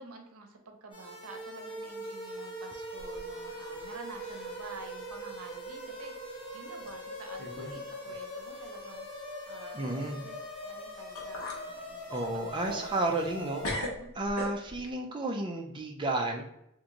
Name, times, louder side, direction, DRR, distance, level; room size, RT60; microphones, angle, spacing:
voice 1, 0.0-13.3 13.6-13.7 14.0-14.1, right 3 dB, 90° right, 4 dB, 0.6 m, -50 dB
sound 1, 0.9-13.7, equal, 25° left, 1.0 m, -42 dB
sound 2, 3.0-3.9 4.2-4.6 5.1-5.2 6.0-6.2 6.9-7.0 7.4-7.8 8.1-8.2 10.7-10.8 11.2-11.7 12.1-13.4 13.6-14.9, left 1 dB, 90° left, 1.0 m, -39 dB
voice 2, 9.7-10.2 12.1-13.6 14.1-16.4, right 2 dB, 20° right, 1 dB, 0.4 m, -32 dB
3.0 x 2.6 x 3.7 m, 0.77 s
head